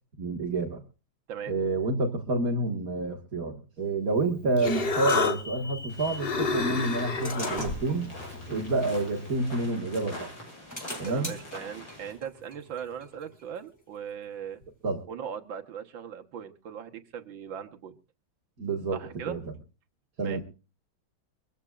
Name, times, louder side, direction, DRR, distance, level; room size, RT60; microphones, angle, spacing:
voice 1, 0.2-0.8 1.5-8.1 8.5-10.3 11.0-11.3 14.8-15.0 18.6-19.0 19.3-19.4 20.2-20.4, right 2 dB, 45° right, -1 dB, 2.1 m, -28 dB
sound 1, 4.1-6.3 6.8-9.9 10.4-13.8, left 1 dB, 10° left, 2.5 m, -42 dB
Human voice, 4.2-9.3, left 4 dB, 35° left, 1.1 m, -32 dB
sound 2, 5.9-12.1, left 1 dB, 75° left, 7.9 m, -44 dB
voice 2, 11.0-14.6 15.1-18.0 18.9-19.4 20.2-20.4, right 8 dB, 70° right, 5 dB, 2.0 m, -39 dB
24.0 x 15.0 x 2.4 m, 0.33 s
omnidirectional pair, 2.2 m